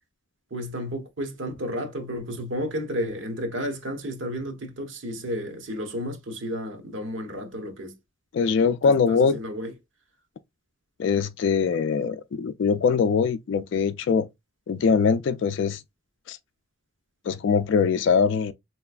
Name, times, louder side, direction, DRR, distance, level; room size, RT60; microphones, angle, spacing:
voice 1, 0.5-7.9 8.8-9.7, equal, 70° right, 0.8 m, -32 dB
voice 2, 8.3-9.4 11.0-14.3 14.7-15.8 16.3-16.4 17.3-18.5, left 5 dB, 65° left, 0.3 m, -22 dB
3.3 x 2.9 x 2.3 m
head